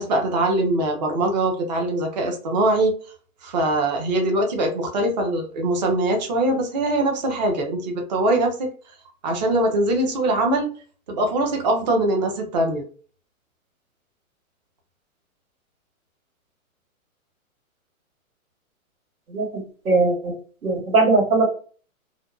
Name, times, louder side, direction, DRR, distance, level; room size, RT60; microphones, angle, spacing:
voice 1, 0.0-2.9 3.4-8.7 9.2-10.7 11.1-12.8, right 1 dB, 30° right, 2 dB, 0.5 m, -22 dB
voice 2, 19.3-20.3 20.6-21.5, right 3 dB, 85° right, 2 dB, 1.3 m, -20 dB
2.5 x 2.2 x 2.4 m, 0.40 s
hypercardioid pair, 150°, 43 cm